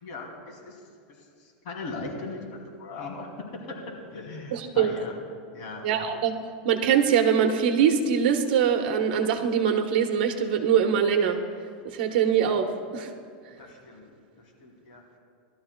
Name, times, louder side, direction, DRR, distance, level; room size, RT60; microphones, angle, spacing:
voice 1, 0.0-5.2 5.5-5.9 13.6-15.0, left 3 dB, 55° left, -1 dB, 3.0 m, -39 dB
voice 2, 4.5-4.9 5.8-6.3 6.6-11.4 11.9-12.7 12.9-13.1, right 8 dB, 70° right, 4 dB, 1.2 m, -23 dB
19.5 x 12.5 x 2.4 m, 2.1 s
supercardioid pair, 140°, 5 cm